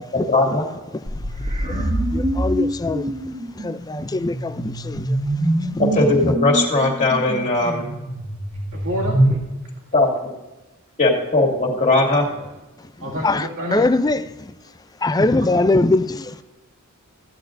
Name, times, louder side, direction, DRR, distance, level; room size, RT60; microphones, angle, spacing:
voice 1, 0.1-0.6 5.8-7.8 9.9-10.3 11.0-12.3, left 2 dB, 35° left, 2.4 m, -18 dB
sound 1, 1.1-9.4, right 1 dB, 30° right, 1.7 m, -24 dB
voice 2, 1.6-3.2 3.5-5.2 5.6-6.4 12.8-14.5 15.0-16.4, left 2 dB, 15° left, 0.4 m, -23 dB
voice 3, 8.7-9.2 12.3-12.4 13.0-13.8 15.4-15.5, equal, 65° right, 2.5 m, -28 dB
16.0 x 10.5 x 2.6 m
head